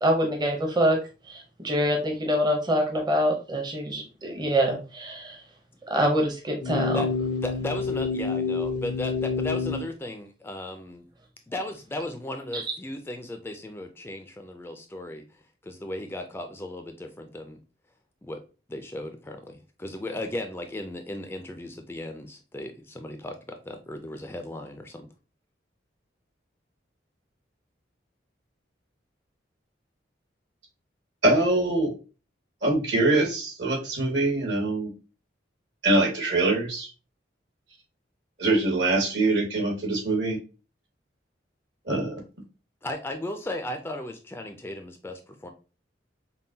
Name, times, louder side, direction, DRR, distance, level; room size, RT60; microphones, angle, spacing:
voice 1, 0.0-1.0 1.3-5.4 5.9-7.0 12.5-12.6, equal, 25° right, 1 dB, 0.6 m, -25 dB
sound 1, 6.6-9.8, left 4 dB, 80° left, 0.6 m, -28 dB
voice 2, 7.4-11.1 11.5-15.2 15.6-17.6 18.2-18.4 18.7-25.1 42.8-45.5, left 1 dB, 10° left, 5 dB, 0.4 m, -36 dB
voice 3, 31.2-31.9 32.6-34.9 35.8-36.9 38.4-40.4 41.9-42.1, right 2 dB, 70° right, -1 dB, 1.6 m, -23 dB
5.4 x 2.2 x 2.7 m, 0.33 s
head